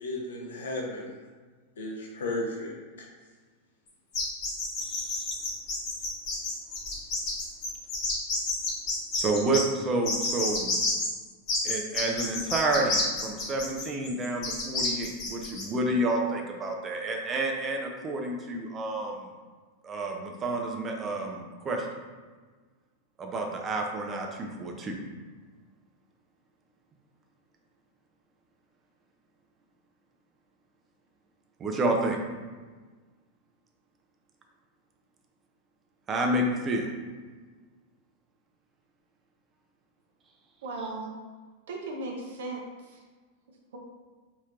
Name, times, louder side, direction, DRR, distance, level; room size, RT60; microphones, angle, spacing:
voice 1, 0.0-1.2 1.8-3.1, left 2 dB, 65° left, -1 dB, 0.7 m, -34 dB
sound 1, 4.1-9.6 10.1-11.1 11.5-15.6, left 3 dB, 35° left, 1.2 m, -29 dB
voice 2, 4.8-5.3 9.1-10.8 11.6-19.3 19.8-21.9 23.2-25.0 31.6-32.2 36.1-36.9, right 2 dB, 25° right, 2 dB, 0.5 m, -29 dB
voice 3, 40.6-41.1 41.7-43.0, right 2 dB, 60° right, 0 dB, 0.7 m, -36 dB
4.3 x 2.9 x 2.4 m, 1.4 s
figure-of-eight pair, 90°, 0 cm